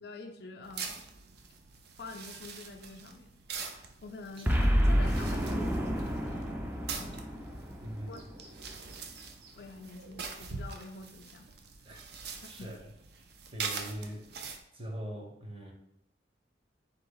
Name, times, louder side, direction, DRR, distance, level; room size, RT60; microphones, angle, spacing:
voice 1, 0.0-1.1 2.0-3.3 3.7-6.5 7.0-7.4 8.1-8.2 9.5-11.5 12.4-12.8, left 3 dB, 60° left, 2 dB, 0.4 m, -47 dB
sound 1, 0.6-14.6, right 5 dB, 60° right, 0.5 m, -44 dB
Boom, 4.5-8.9, equal, 10° right, 0.4 m, -29 dB
voice 2, 7.8-8.2 11.8-12.0 12.5-12.8 13.5-14.4 14.7-15.7, equal, 30° right, 1 dB, 0.8 m, -41 dB
3.9 x 2.8 x 3.8 m, 0.81 s
head